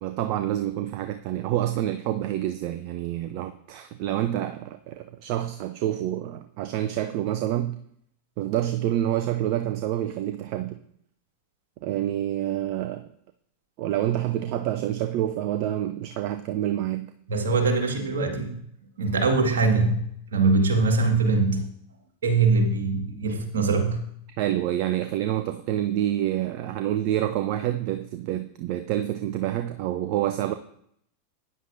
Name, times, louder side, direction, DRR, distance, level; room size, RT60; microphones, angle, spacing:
voice 1, 0.0-7.8 8.4-10.8 11.8-13.1 13.8-17.1 24.4-30.5, right 12 dB, 45° right, 10 dB, 0.5 m, -27 dB
voice 2, 17.3-18.5 19.0-21.6 22.2-24.0, right 3 dB, 65° right, 3 dB, 1.8 m, -22 dB
12.5 x 9.7 x 2.6 m, 0.71 s
figure-of-eight pair, 90°, 0 cm